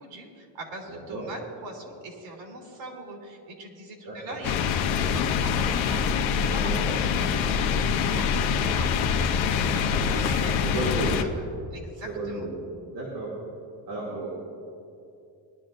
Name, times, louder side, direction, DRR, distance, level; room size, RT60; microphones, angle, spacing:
voice 1, 0.0-11.4 11.7-12.5, right 2 dB, 85° right, 0 dB, 3.2 m, -42 dB
voice 2, 0.9-1.2 4.0-4.4 6.6-6.9 9.8-10.1 10.6-11.1 12.0-12.5 12.9-13.3 13.9-14.3, right 2 dB, 60° right, -5 dB, 2.7 m, -33 dB
sound 1, 4.4-11.2, left 6 dB, 80° left, 0.9 m, -25 dB
21.0 x 12.0 x 2.5 m, 2.6 s
cardioid pair, 180°, 45 cm